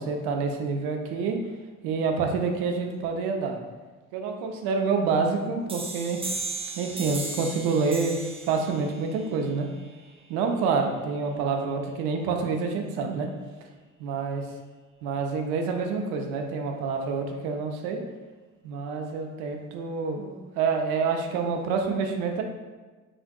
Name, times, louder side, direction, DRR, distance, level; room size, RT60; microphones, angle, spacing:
voice 1, 0.0-1.4 1.8-3.6 4.1-6.2 6.8-8.2 8.5-9.7 10.3-13.3 14.0-14.4 15.0-18.0 18.6-22.4, right 5 dB, 70° right, 3 dB, 0.6 m, -27 dB
sound 1, 5.7-11.1, right 2 dB, 15° right, 0.5 m, -37 dB
4.8 x 2.5 x 2.2 m, 1.3 s
hypercardioid pair, 45°, 40 cm